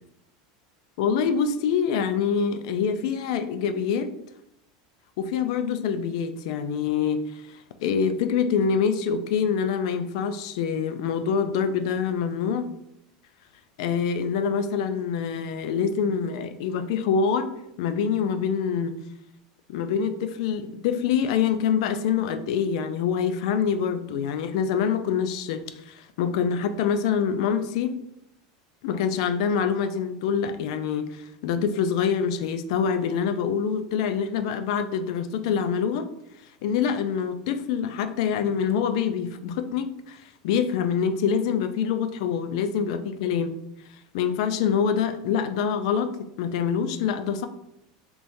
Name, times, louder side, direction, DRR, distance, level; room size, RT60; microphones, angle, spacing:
voice 1, 1.0-4.1 5.2-12.7 13.8-19.0 19.7-28.0 28.8-36.1 36.6-43.6 44.1-46.1 46.4-47.5, left 7 dB, 70° left, 10 dB, 0.4 m, -25 dB
3.5 x 2.9 x 2.6 m, 0.79 s
supercardioid pair, 140°, 3 cm